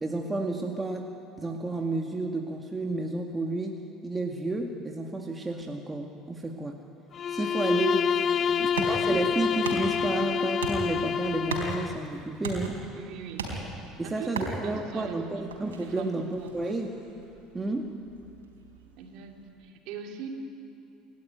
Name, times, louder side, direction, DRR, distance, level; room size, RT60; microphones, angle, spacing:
voice 1, 0.0-1.1 1.4-6.8 7.3-8.0 8.6-12.8 14.0-16.9 17.5-18.0, right 2 dB, 15° right, 2 dB, 2.0 m, -31 dB
Bowed string instrument, 7.1-12.0, left 7 dB, 45° left, 0.7 m, -27 dB
sound 1, 8.0-19.5, right 3 dB, 85° right, 4.0 m, -39 dB
voice 2, 8.3-8.9 12.9-13.5 14.0-15.5 15.8-16.1 16.4-16.8 19.0-20.3, right 6 dB, 65° right, 2 dB, 3.2 m, -42 dB
29.0 x 13.0 x 9.3 m, 2.7 s
hypercardioid pair, 70°, 0 cm